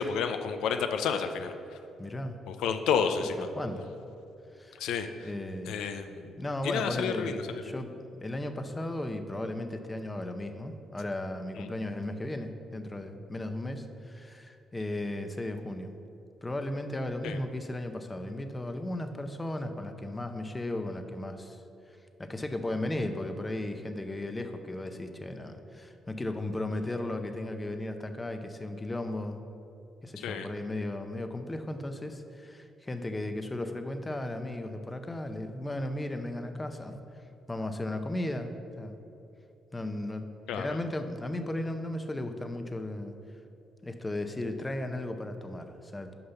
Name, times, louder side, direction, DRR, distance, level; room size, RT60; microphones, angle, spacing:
voice 1, 0.0-1.5 2.5-3.5 4.8-5.1 5.7-6.3 6.6-7.7 11.6-11.7 17.2-17.4 30.2-30.5 40.5-40.8, left 6 dB, 85° left, 7 dB, 0.4 m, -30 dB
voice 2, 2.0-2.4 3.6-3.9 4.5-4.8 5.2-5.9 6.4-15.9 16.4-21.6 22.2-29.4 30.0-37.0 37.5-39.0 39.7-40.3 40.5-43.1 43.8-46.1, left 1 dB, 20° left, 7 dB, 0.6 m, -35 dB
6.7 x 5.6 x 5.6 m, 2.8 s
cardioid pair, 90°, 0 cm